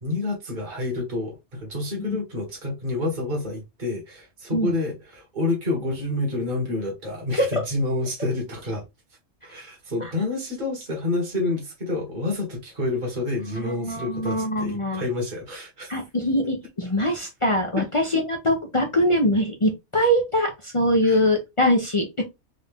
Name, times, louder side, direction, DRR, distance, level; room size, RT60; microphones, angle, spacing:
voice 1, 0.0-8.8 9.4-15.9 17.8-17.9 21.0-21.2, left 2 dB, 45° right, 1.6 m, -28 dB
voice 2, 7.3-7.6 10.0-10.1 13.5-15.0 15.9-22.2, equal, 30° left, 0.8 m, -23 dB
3.9 x 2.7 x 3.5 m
omnidirectional pair, 1.2 m